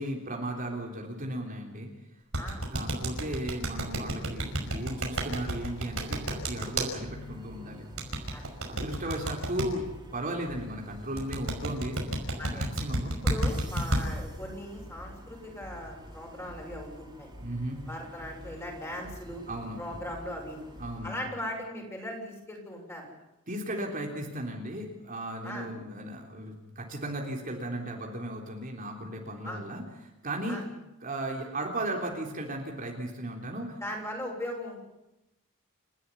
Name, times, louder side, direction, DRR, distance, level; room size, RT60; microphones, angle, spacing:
voice 1, 0.0-1.9 2.7-7.8 8.7-9.9 10.1-13.2 17.4-17.8 19.5-19.8 20.8-21.2 23.5-29.8 30.2-30.6 31.0-33.8, right 1 dB, 40° right, 0 dB, 3.6 m, -36 dB
sound 1, 2.3-6.9 8.0-9.6 11.2-14.0, right 1 dB, 80° right, 5.7 m, -29 dB
voice 2, 2.4-2.7 8.3-8.4 9.0-9.2 12.4-12.7 13.2-17.3 17.9-19.4 19.8-20.7 21.0-23.1 25.4-25.7 29.4-29.6 30.5-30.6 33.8-34.9, left 1 dB, 15° left, 0 dB, 7.0 m, -39 dB
sound 2, 4.4-21.1, equal, 20° right, 5.3 m, -47 dB
30.0 x 13.0 x 9.9 m, 0.94 s
head